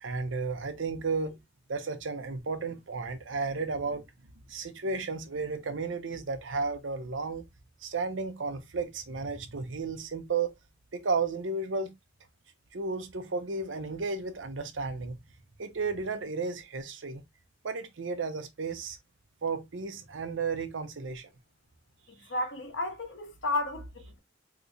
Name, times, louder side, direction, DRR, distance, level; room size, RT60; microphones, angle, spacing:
voice 1, 0.0-1.3 1.7-4.0 4.5-7.4 7.8-10.5 10.9-11.9 12.7-15.2 15.6-17.2 17.6-19.0 19.4-21.3, right 4 dB, 80° right, 0.7 m, -33 dB
voice 2, 22.1-24.2, left 2 dB, 80° left, 1.1 m, -33 dB
3.0 x 2.2 x 3.9 m
head